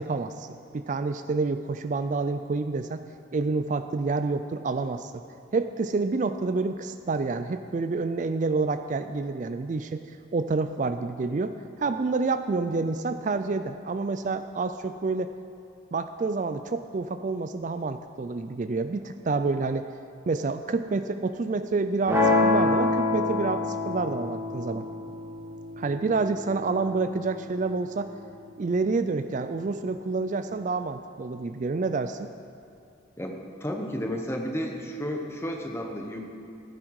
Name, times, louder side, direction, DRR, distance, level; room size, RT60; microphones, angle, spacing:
voice 1, 0.0-3.0 3.3-5.2 5.5-15.3 15.9-19.9 20.3-24.8 25.8-28.1 28.6-32.3, right 3 dB, 40° right, 9 dB, 0.3 m, -28 dB
Clean A Chord, 22.1-28.1, left 2 dB, 15° right, 2.0 m, -27 dB
voice 2, 33.2-36.2, equal, 10° left, 2 dB, 0.9 m, -32 dB
15.5 x 9.9 x 4.7 m, 2.7 s
head